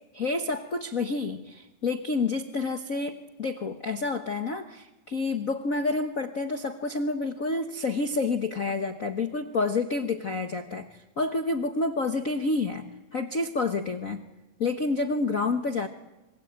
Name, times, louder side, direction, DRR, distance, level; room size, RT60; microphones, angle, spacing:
voice 1, 0.1-14.2 14.6-15.9, left 3 dB, 65° left, 7 dB, 0.8 m, -29 dB
26.0 x 25.5 x 8.8 m, 1.0 s
omnidirectional pair, 3.5 m